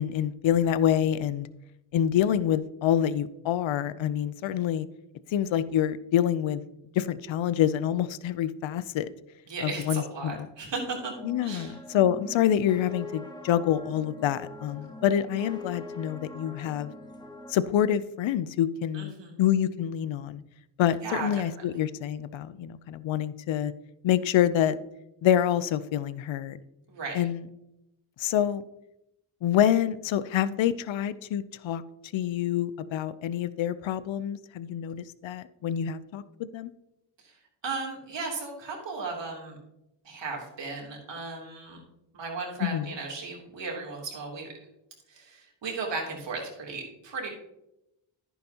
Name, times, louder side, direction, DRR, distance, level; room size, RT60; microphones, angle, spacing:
voice 1, 0.0-1.5 1.9-4.9 5.3-6.6 6.9-9.1 9.6-10.5 11.2-16.9 17.5-19.1 19.4-20.4 20.8-23.7 24.0-24.8 25.2-26.6 27.1-27.4 28.2-28.6 29.4-31.8 32.1-36.7 42.6-42.9, left 10 dB, 70° left, 15 dB, 0.7 m, -26 dB
voice 2, 9.5-11.1 11.4-11.8 18.9-19.4 21.0-21.3 21.6-21.8 26.9-27.2 37.2-37.4 37.6-39.6 40.0-41.8 42.1-44.5 45.1-47.3, right 4 dB, 65° right, -1 dB, 3.3 m, -36 dB
sound 1, 11.1-17.5, left 2 dB, 10° left, 1.2 m, -42 dB
11.0 x 9.4 x 3.0 m, 0.87 s
cardioid pair, 65°, 47 cm